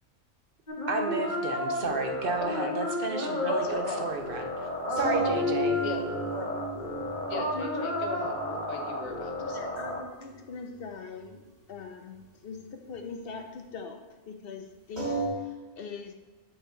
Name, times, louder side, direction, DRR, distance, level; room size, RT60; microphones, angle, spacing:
sound 1, 0.7-10.0, left 2 dB, 35° left, 1.2 m, -32 dB
voice 1, 0.9-4.5 4.9-5.8, right 4 dB, 50° right, 5 dB, 0.8 m, -32 dB
voice 2, 3.5-4.0 5.7-6.0 6.3-6.5 7.3-9.7, left 3 dB, 90° left, 4 dB, 1.3 m, -38 dB
sound 2, 5.0-10.0 10.3-10.4 10.7-10.8 11.2-11.3 15.0-15.3, right 3 dB, 85° right, 2.2 m, -34 dB
voice 3, 9.4-11.4 11.7-16.1, left 5 dB, 50° left, 5 dB, 0.9 m, -42 dB
7.9 x 4.4 x 3.8 m, 1.2 s
omnidirectional pair, 1.4 m